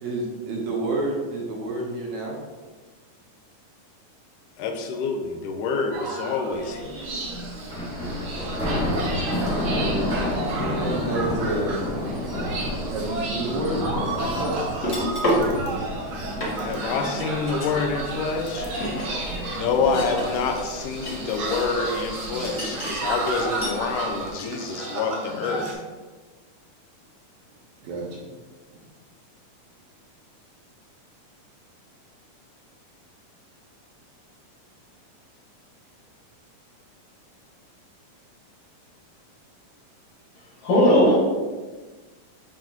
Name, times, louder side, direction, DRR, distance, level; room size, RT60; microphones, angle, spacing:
voice 1, 0.0-2.4 8.4-8.7 9.8-10.3 10.6-11.8 12.9-13.8 14.2-14.7 19.8-20.0 27.8-28.2, right 2 dB, 70° right, -3 dB, 2.2 m, -29 dB
voice 2, 4.6-7.0 16.6-18.7 19.5-25.8, left 5 dB, 80° left, 4 dB, 2.1 m, -27 dB
sound 1, 5.9-25.7, right 2 dB, 85° right, 1.1 m, -33 dB
Thunder, 6.5-24.3, left 1 dB, 5° left, 0.6 m, -32 dB
sound 2, 14.7-15.5 16.0-16.1 16.4-24.0 24.3-24.4, equal, 35° left, 1.0 m, -31 dB
voice 3, 40.4-41.2, equal, 60° left, -4 dB, 2.8 m, -18 dB
10.0 x 3.5 x 2.9 m, 1.3 s
omnidirectional pair, 3.8 m